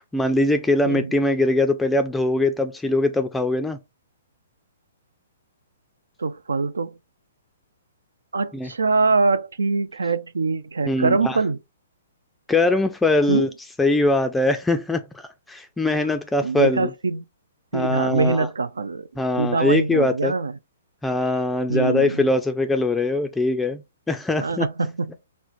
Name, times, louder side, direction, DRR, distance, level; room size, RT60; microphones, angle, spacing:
voice 1, 0.0-3.8 8.5-8.7 10.9-11.4 12.5-13.5 13.8-16.9 17.7-18.5 19.2-20.3 21.0-23.8 24.1-24.7, left 2 dB, 5° left, 0.3 m, -22 dB
voice 2, 6.2-6.9 8.3-11.6 13.3-13.5 16.4-17.2 17.7-19.1 19.4-20.5 21.7-22.3 24.4-25.1, right 4 dB, 90° right, 0.3 m, -23 dB
4.3 x 2.0 x 2.5 m
hypercardioid pair, 135°, 0 cm